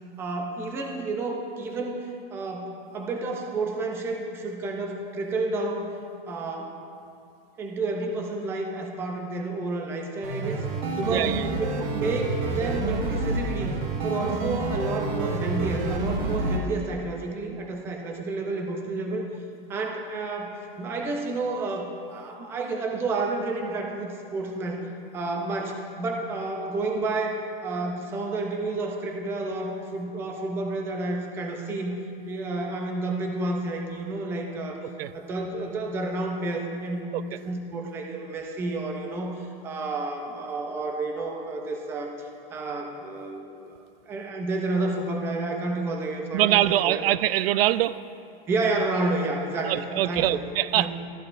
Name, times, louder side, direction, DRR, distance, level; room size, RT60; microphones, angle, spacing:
voice 1, 0.2-5.9 6.3-6.8 7.6-10.7 10.9-13.7 14.0-19.3 19.7-34.8 35.1-43.8 44.1-47.0 48.5-50.4 50.7-50.9, right 2 dB, 10° right, 2 dB, 0.4 m, -30 dB
sound 1, 10.2-16.6, right 3 dB, 60° right, 1.4 m, -28 dB
voice 2, 11.1-11.6 35.0-35.1 37.1-37.2 46.3-48.0 49.7-50.9, right 13 dB, 85° right, 15 dB, 0.5 m, -23 dB
13.5 x 10.5 x 2.5 m, 2.5 s
supercardioid pair, 170°, 29 cm